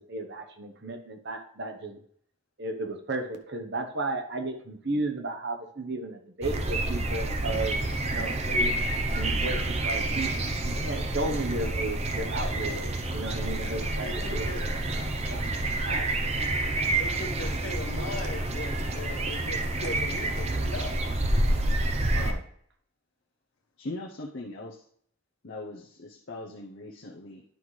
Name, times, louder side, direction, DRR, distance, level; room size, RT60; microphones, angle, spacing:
voice 1, 0.0-2.0 2.6-8.8 9.1-10.3 10.6-16.1 22.1-22.4, right 2 dB, 55° right, 5 dB, 0.9 m, -34 dB
sound 1, 6.4-22.3, right 2 dB, 30° right, 0.7 m, -28 dB
voice 2, 14.0-14.6 16.7-21.0, left 2 dB, 80° left, 3 dB, 1.3 m, -39 dB
voice 3, 23.8-24.8 25.4-27.4, left 2 dB, 55° left, -2 dB, 0.7 m, -40 dB
10.5 x 5.6 x 3.2 m, 0.64 s
head